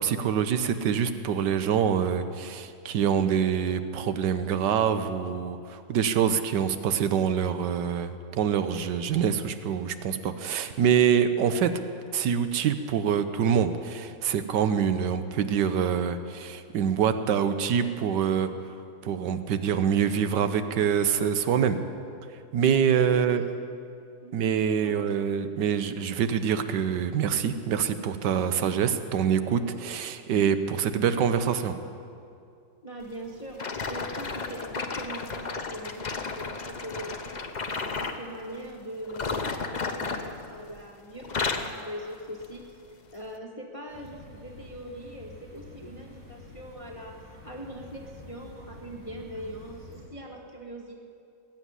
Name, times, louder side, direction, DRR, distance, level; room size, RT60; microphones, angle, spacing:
voice 1, 0.0-11.7 12.1-18.5 19.0-21.8 22.5-23.4 24.3-31.8, right 8 dB, 80° right, 10 dB, 1.4 m, -25 dB
voice 2, 22.9-23.3 24.2-24.5 24.8-24.9 32.8-42.7 43.1-47.1 47.4-51.0, equal, 20° left, 0 dB, 1.2 m, -41 dB
sound 1, 33.6-38.2 39.1-40.9 41.2-41.8 42.4-42.6 43.3-43.4, left 4 dB, 45° left, 0.6 m, -33 dB
sound 2, 43.9-50.1, left 2 dB, 30° right, 4.5 m, -48 dB
20.0 x 7.4 x 9.7 m, 2.4 s
omnidirectional pair, 1.9 m